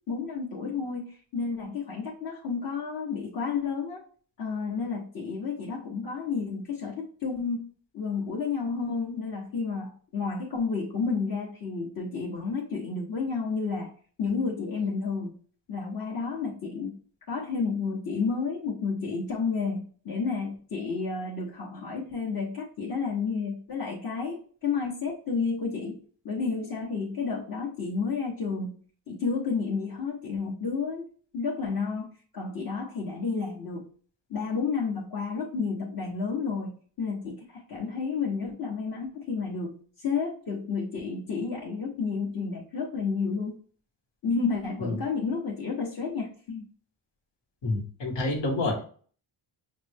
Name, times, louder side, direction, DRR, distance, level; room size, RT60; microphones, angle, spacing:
voice 1, 0.1-4.0 4.4-13.9 14.2-15.4 15.7-17.0 17.3-26.0 26.2-28.8 29.1-31.0 31.3-32.1 32.3-33.9 34.3-43.6 44.2-46.7, left 5 dB, 45° left, -6 dB, 1.2 m, -31 dB
voice 2, 47.6-48.8, left 2 dB, 65° left, 1 dB, 1.5 m, -28 dB
5.7 x 2.2 x 3.4 m, 0.43 s
cardioid pair, 115°, 47 cm